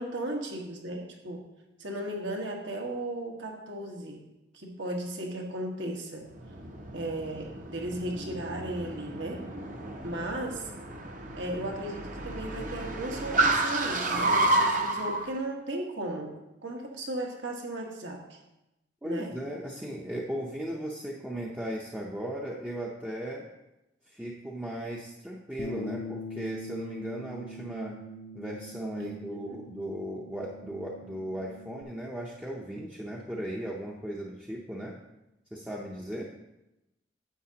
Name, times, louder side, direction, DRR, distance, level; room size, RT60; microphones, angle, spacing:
voice 1, 0.0-1.4 1.8-4.2 4.5-6.3 6.9-9.4 10.0-10.6 11.3-16.3 16.6-18.4 19.0-19.3 29.0-29.6, right 1 dB, 75° right, 1 dB, 1.4 m, -36 dB
Car, 6.3-15.2, right 2 dB, 45° right, 0.7 m, -30 dB
voice 2, 19.0-23.4 24.1-28.0 28.3-35.0 35.5-36.3, equal, 5° right, -3 dB, 0.6 m, -37 dB
Bass guitar, 25.6-31.8, left 1 dB, 40° left, 0.5 m, -43 dB
9.9 x 7.7 x 2.8 m, 0.95 s
head